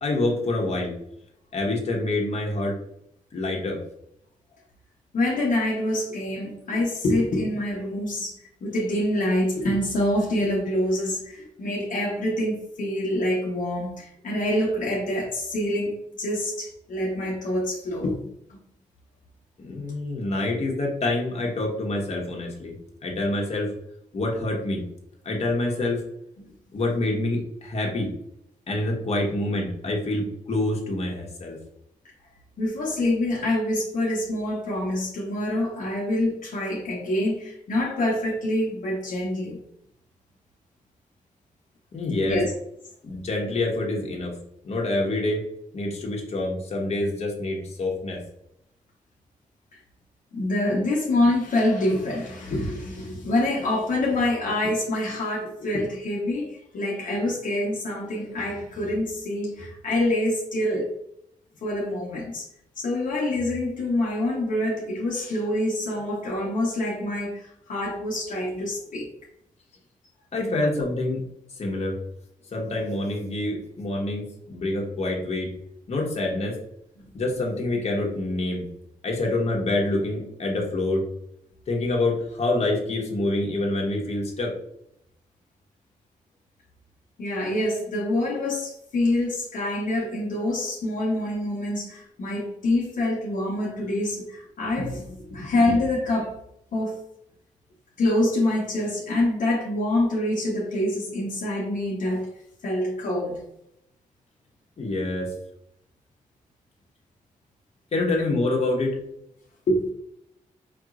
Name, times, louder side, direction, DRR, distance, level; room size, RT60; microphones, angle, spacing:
voice 1, 0.0-0.9 1.5-2.7 3.3-3.8 19.6-22.7 23.0-23.7 24.1-24.8 25.2-26.0 26.7-28.1 28.7-31.6 41.9-42.4 43.0-44.3 44.6-45.4 45.7-48.2 70.3-71.2 71.6-72.0 72.5-75.5 75.9-76.6 77.1-78.6 79.0-81.0 81.7-84.5 104.8-105.3 107.9-109.0, left 2 dB, 50° left, 1.2 m, -26 dB
voice 2, 5.1-18.2 18.5-18.6 32.6-39.6 42.2-42.5 49.7-49.8 50.3-60.9 61.6-62.4 62.8-69.1 87.2-96.4 96.7-97.0 98.0-102.3 102.6-103.4 109.7-109.9, left 1 dB, 70° left, 1.0 m, -26 dB
5.2 x 3.0 x 2.5 m
cardioid pair, 105°, 14 cm